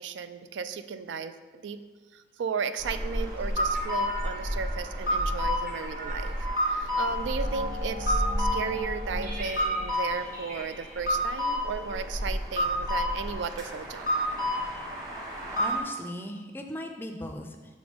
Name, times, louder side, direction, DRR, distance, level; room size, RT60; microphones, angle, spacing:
voice 1, 0.0-1.8 2.1-6.4 6.6-14.1, right 5 dB, 85° right, 12 dB, 0.3 m, -35 dB
sound 1, 2.8-15.8, equal, 20° right, 1.0 m, -30 dB
sound 2, 3.7-12.7, right 1 dB, 50° right, 0.9 m, -41 dB
voice 2, 15.5-17.6, left 1 dB, 10° left, 4 dB, 0.4 m, -38 dB
5.2 x 3.9 x 5.1 m, 1.4 s
head